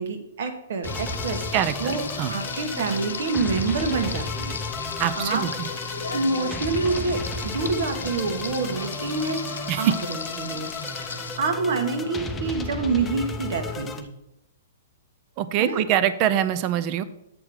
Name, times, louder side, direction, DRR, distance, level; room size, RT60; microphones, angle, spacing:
voice 1, 0.0-1.5 1.8-2.0 2.3-4.6 5.2-5.4 6.1-10.7 11.0-14.1 15.6-15.8, right 4 dB, 65° right, 6 dB, 1.3 m, -27 dB
Frying (food), 0.8-11.4, left 5 dB, 90° left, 0.8 m, -35 dB
sound 1, 0.8-14.0, left 2 dB, 10° left, 0.6 m, -34 dB
voice 2, 1.5-2.3 5.0-5.7 9.7-9.9 15.4-17.0, right 10 dB, 35° right, 14 dB, 0.5 m, -24 dB
7.5 x 4.7 x 5.0 m, 0.84 s
hypercardioid pair, 140°, 0 cm